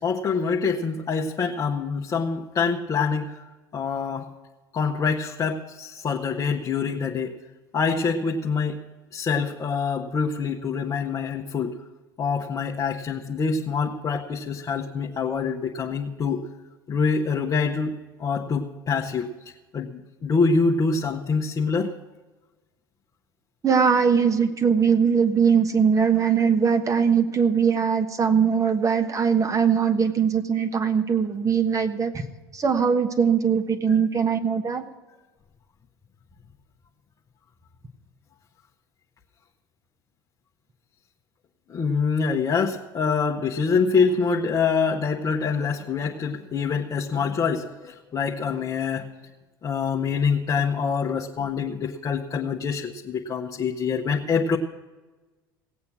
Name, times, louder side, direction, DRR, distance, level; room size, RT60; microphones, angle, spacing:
voice 1, 0.0-3.4 3.7-4.3 4.7-7.4 7.7-8.8 9.1-11.7 12.2-16.4 16.9-17.9 18.2-19.3 19.7-21.9 33.9-34.0 41.7-49.1 49.6-54.6, left 5 dB, 30° left, -1 dB, 1.1 m, -25 dB
voice 2, 23.6-32.1 32.6-34.8, right 6 dB, 25° right, 8 dB, 1.3 m, -21 dB
17.5 x 8.4 x 6.0 m, 1.2 s
hypercardioid pair, 75°, 12 cm